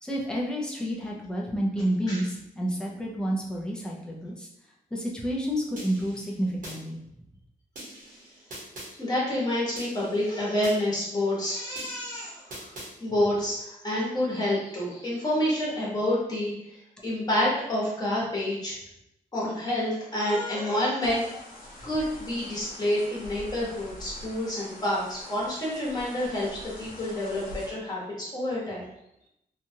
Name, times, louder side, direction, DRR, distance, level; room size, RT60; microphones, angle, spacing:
voice 1, 0.0-4.5 4.9-7.0, equal, 5° left, -3 dB, 0.5 m, -30 dB
sound 1, 5.8-6.8 7.7-8.9 9.7-10.8 11.7-12.9, right 1 dB, 65° right, 1.1 m, -43 dB
voice 2, 9.0-12.7 13.0-18.8 19.3-21.4 21.8-28.9, left 1 dB, 25° left, -6 dB, 1.1 m, -28 dB
sound 2, 21.0-27.7, left 1 dB, 75° left, 0.8 m, -44 dB
2.9 x 2.3 x 2.7 m, 0.80 s
wide cardioid pair, 140°, 15 cm